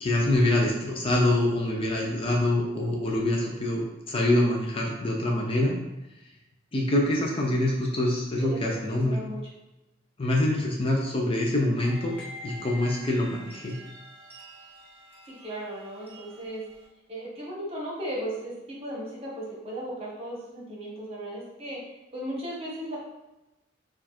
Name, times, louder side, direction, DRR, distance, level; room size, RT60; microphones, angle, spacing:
voice 1, 0.0-5.8 6.7-9.2 10.2-12.2 12.4-13.8, left 1 dB, 30° left, -1 dB, 0.5 m, -25 dB
voice 2, 8.4-9.4 15.3-16.6 17.1-21.8 22.1-23.0, right 1 dB, 30° right, -3 dB, 1.2 m, -36 dB
sound 1, 11.8-16.8, left 1 dB, 10° left, 1.4 m, -46 dB
4.3 x 2.5 x 4.3 m, 0.97 s
head